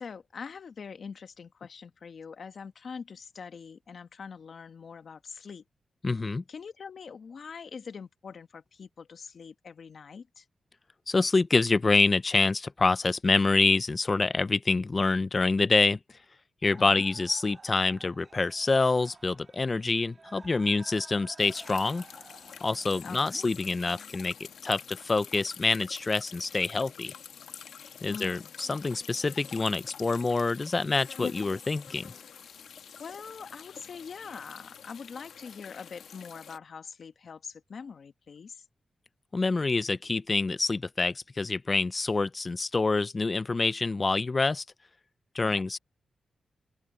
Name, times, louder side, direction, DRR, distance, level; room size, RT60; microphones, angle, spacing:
voice 1, 0.0-5.6 6.5-10.4 16.8-17.0 23.0-23.5 28.1-28.5 33.0-38.6 45.4-45.6, left 6 dB, 65° left, 1.3 m, -43 dB
voice 2, 6.0-6.4 11.1-16.0 16.6-22.0 22.6-24.3 24.6-27.1 28.0-32.1 39.3-44.6 45.3-45.8, left 3 dB, 35° left, 0.5 m, -26 dB
sound 1, 16.6-23.0, right 4 dB, 40° right, 2.2 m, -52 dB
sound 2, 21.4-36.6, left 7 dB, 85° left, 1.4 m, -46 dB
open air
cardioid pair, 70°, 0 cm